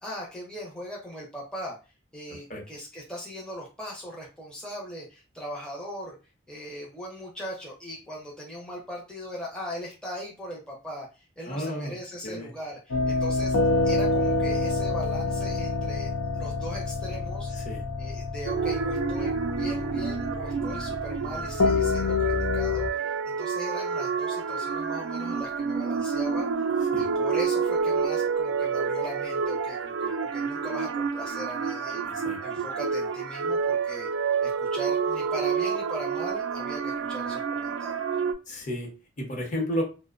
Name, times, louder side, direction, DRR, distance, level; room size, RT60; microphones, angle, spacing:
voice 1, 0.0-1.8 2.1-6.2 6.5-13.6 13.8-17.5 18.0-26.5 27.0-32.0 32.4-34.1 34.4-38.1, equal, 5° left, -4 dB, 0.5 m, -39 dB
voice 2, 11.5-11.9 12.2-12.5 17.5-17.8 26.9-27.1 32.0-32.4 38.5-39.8, equal, 40° left, -1 dB, 0.8 m, -32 dB
sound 1, 12.9-22.9, left 3 dB, 85° left, 0.5 m, -27 dB
sound 2, 18.5-38.3, right 5 dB, 70° right, 0.3 m, -29 dB
2.5 x 2.1 x 2.4 m, 0.31 s
head